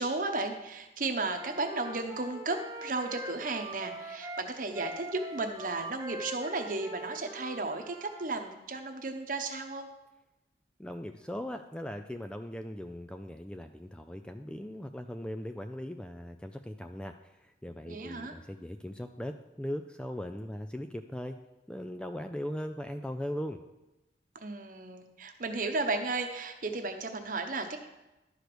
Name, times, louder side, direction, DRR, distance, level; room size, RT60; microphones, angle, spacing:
voice 1, 0.0-9.9 17.8-18.3 24.4-27.8, right 3 dB, 50° right, 6 dB, 1.0 m, -34 dB
Wind instrument woodwind instrument, 1.2-8.2, right 2 dB, 20° right, 0.8 m, -43 dB
voice 2, 10.8-17.2 17.6-21.4 21.7-23.6, equal, 5° left, 7 dB, 0.3 m, -39 dB
11.5 x 5.0 x 6.1 m, 1.0 s
head